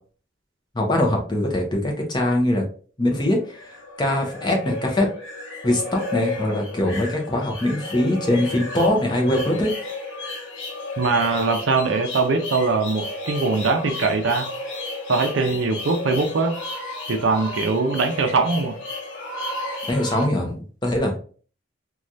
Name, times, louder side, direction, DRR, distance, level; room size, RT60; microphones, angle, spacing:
voice 1, 0.7-2.6 3.0-3.6 4.0-5.1 5.6-9.7 19.9-21.2, left 1 dB, 20° left, 1 dB, 0.6 m, -22 dB
sound 1, 3.3-20.3, left 2 dB, 65° left, 0.8 m, -33 dB
voice 2, 11.0-14.5 15.1-16.5 17.1-18.8, right 4 dB, 75° right, 5 dB, 0.5 m, -21 dB
3.1 x 2.3 x 2.6 m, 0.41 s
head